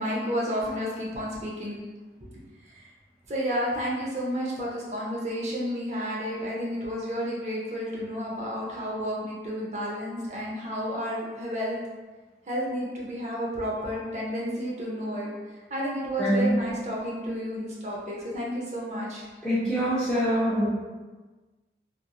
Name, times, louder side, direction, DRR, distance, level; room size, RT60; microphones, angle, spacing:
voice 1, 0.0-1.8 2.7-2.9 3.3-11.8 12.5-15.3 15.7-19.2, equal, 40° right, -4 dB, 0.6 m, -31 dB
voice 2, 16.2-16.5 19.4-20.7, equal, 5° left, -12 dB, 0.4 m, -24 dB
2.8 x 2.6 x 2.2 m, 1.2 s
head